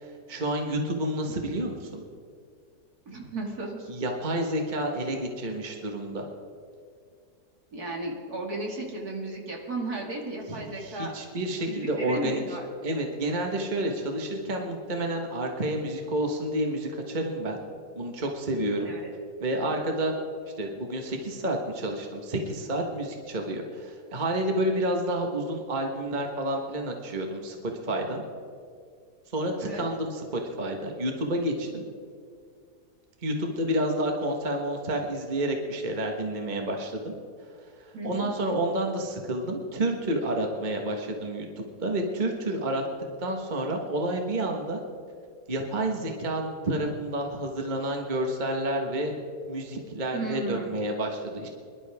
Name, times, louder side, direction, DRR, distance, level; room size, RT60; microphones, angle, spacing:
voice 1, 0.0-2.0 3.9-6.3 10.5-12.4 12.8-17.6 17.9-18.9 19.4-20.1 20.6-28.2 29.3-31.8 33.2-37.1 37.8-42.8 43.2-44.8 45.5-49.1 49.5-51.5, right 1 dB, 30° right, 2 dB, 1.4 m, -29 dB
voice 2, 3.1-3.9 7.7-11.1 11.7-12.7 18.8-19.1 29.6-29.8 37.9-38.3 50.1-50.7, right 2 dB, 65° right, -1 dB, 2.8 m, -34 dB
24.5 x 11.5 x 3.5 m, 2.3 s
omnidirectional pair, 1.7 m